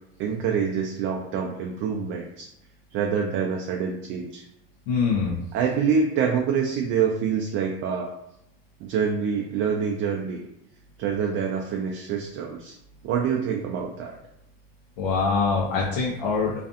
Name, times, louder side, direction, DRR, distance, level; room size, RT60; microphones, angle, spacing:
voice 1, 0.2-2.5 2.9-4.4 5.5-8.1 8.8-10.4 11.0-12.8 13.0-14.2, right 6 dB, 45° right, 1 dB, 0.4 m, -26 dB
voice 2, 4.9-5.4 15.0-16.5, left 4 dB, 75° left, -3 dB, 0.7 m, -24 dB
2.5 x 2.3 x 2.4 m, 0.83 s
hypercardioid pair, 95°, 30 cm